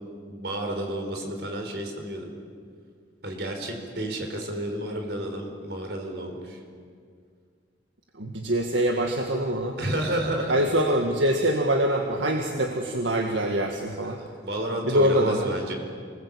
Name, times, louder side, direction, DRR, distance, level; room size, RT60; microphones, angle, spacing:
voice 1, 0.3-2.3 3.2-6.6 9.8-10.6 14.0-15.7, right 1 dB, 60° right, 3 dB, 5.0 m, -31 dB
voice 2, 8.2-9.8 10.5-14.2 14.8-15.5, right 1 dB, 80° right, 2 dB, 2.0 m, -24 dB
28.5 x 20.5 x 8.6 m, 2.1 s
head